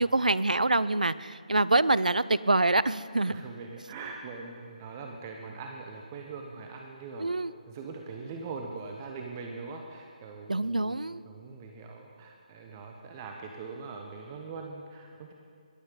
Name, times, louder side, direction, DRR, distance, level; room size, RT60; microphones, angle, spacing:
voice 1, 0.0-3.4 7.2-7.5 10.5-11.2, right 2 dB, 80° right, 17 dB, 0.4 m, -25 dB
voice 2, 3.3-7.3 7.7-10.9 11.3-15.3, right 4 dB, 25° right, 2 dB, 0.9 m, -42 dB
21.5 x 8.8 x 3.8 m, 2.3 s
figure-of-eight pair, 150°, 4 cm